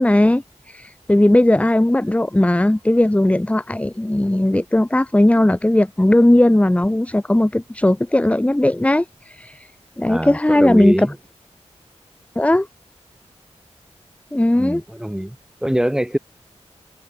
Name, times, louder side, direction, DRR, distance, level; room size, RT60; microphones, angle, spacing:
voice 1, 0.0-9.7 10.0-11.1 12.4-12.7 14.3-14.8, left 1 dB, 10° left, 0.9 m, -17 dB
voice 2, 10.0-11.2 14.6-15.4 15.6-16.2, equal, 5° right, 2.0 m, -23 dB
wide cardioid pair, 100°, 12 cm